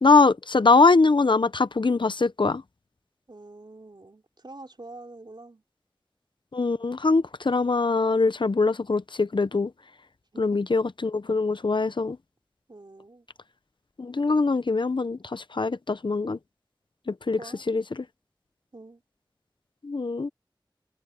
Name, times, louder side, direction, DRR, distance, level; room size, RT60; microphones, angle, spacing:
voice 1, 0.0-2.6 6.5-9.7 10.4-12.2 14.0-16.4 17.1-17.4 17.7-18.0 19.8-20.3, left 3 dB, 85° left, 0.7 m, -22 dB
voice 2, 3.3-5.6 10.3-10.6 12.7-13.3 17.4-17.6 18.7-19.0, right 2 dB, 70° right, 3.6 m, -46 dB
wide cardioid pair, 50°, 8 cm